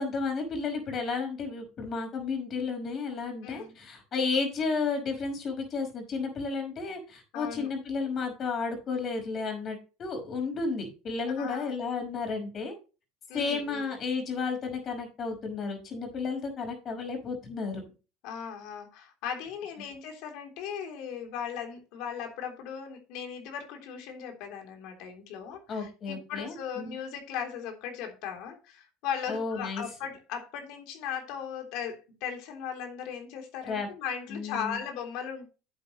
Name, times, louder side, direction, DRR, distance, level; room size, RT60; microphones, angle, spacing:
voice 1, 0.0-12.7 13.3-17.8 25.7-27.0 29.3-29.8 33.6-33.9 34.3-34.8, left 4 dB, 35° left, 4 dB, 5.1 m, -32 dB
voice 2, 3.4-3.7 7.3-7.7 11.4-11.7 13.3-13.9 18.2-35.5, left 7 dB, 65° left, 3 dB, 3.3 m, -37 dB
10.5 x 8.6 x 3.1 m, 0.32 s
supercardioid pair, 120°, 0 cm